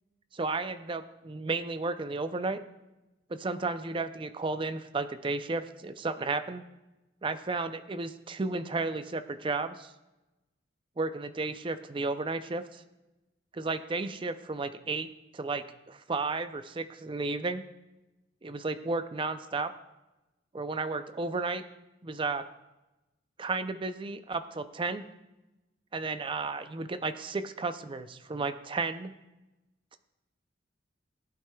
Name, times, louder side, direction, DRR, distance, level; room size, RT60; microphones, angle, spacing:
voice 1, 0.3-2.6 3.3-6.6 7.2-9.9 11.0-12.8 13.5-15.1 15.3-17.6 18.4-19.7 20.5-21.6 22.0-22.4 23.4-25.0 25.9-29.1, right 3 dB, 25° right, 10 dB, 0.4 m, -33 dB
16.5 x 8.6 x 2.3 m, 1.0 s
head